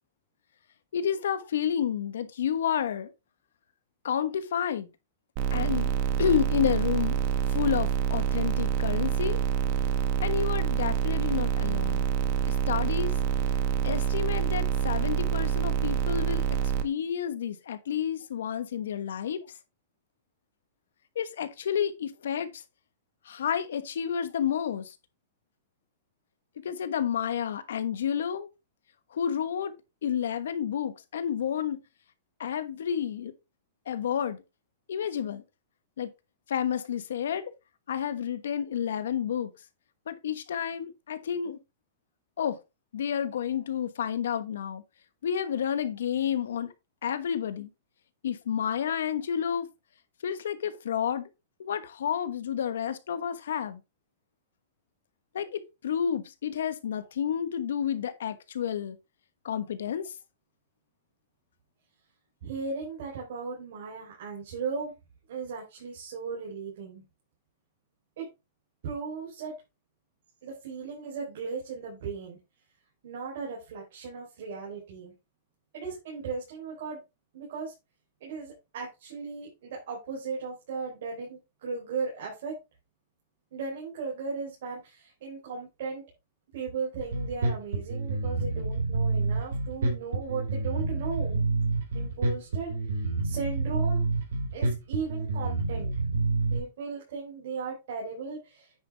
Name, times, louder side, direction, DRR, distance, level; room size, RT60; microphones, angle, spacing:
voice 1, 0.9-3.1 4.0-4.9 5.5-5.9 6.2-7.2 7.5-9.4 10.2-12.1 12.5-13.1 13.8-19.4 21.1-22.5 23.3-24.9 26.6-28.5 29.1-29.7 30.0-31.8 32.4-33.3 33.9-34.4 34.9-35.4 36.0-36.1 36.5-37.5 37.9-39.5 40.1-41.6 42.4-42.6 42.9-44.8 45.2-46.7 47.0-47.7 48.2-49.7 50.2-51.3 51.6-53.8 55.3-59.0 59.4-60.1, left 8 dB, 85° left, 1.2 m, -30 dB
sound 1, 5.4-16.8, right 9 dB, 45° right, 1.4 m, -27 dB
voice 2, 62.4-64.9 65.3-67.0 68.2-68.3 68.8-69.5 70.4-72.4 73.0-75.1 75.7-77.0 77.3-77.7 78.2-82.5 83.5-86.0 86.5-91.4 91.9-94.0 94.5-95.9 96.5-98.7, right 5 dB, 70° right, 3.9 m, -37 dB
Bass guitar, 87.0-96.6, right 3 dB, 85° right, 4.2 m, -28 dB
9.5 x 5.3 x 3.5 m
hypercardioid pair, 140°, 0 cm